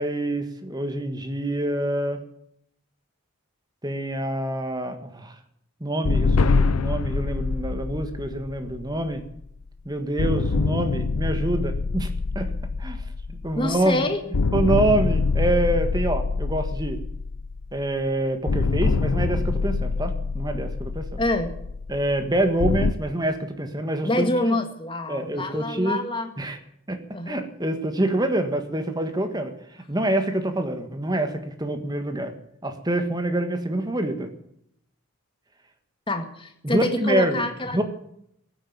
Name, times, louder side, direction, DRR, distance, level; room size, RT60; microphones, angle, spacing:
voice 1, 0.0-2.2 3.8-5.4 5.8-9.2 9.9-12.5 12.8-14.0 14.5-17.0 17.7-21.2 21.9-24.6 25.1-26.0 26.4-26.6 26.9-32.3 32.6-34.3 36.6-37.5 37.7-37.8, right 1 dB, 20° right, 8 dB, 1.6 m, -26 dB
sound 1, 6.0-9.6 10.2-14.0 14.3-18.0 18.5-22.9, left 4 dB, 90° left, 0.6 m, -25 dB
voice 2, 13.6-14.2 21.2-21.6 24.0-26.3 27.1-27.4 36.1-37.8, left 1 dB, 25° left, 6 dB, 1.8 m, -26 dB
15.5 x 9.6 x 8.9 m, 0.74 s
head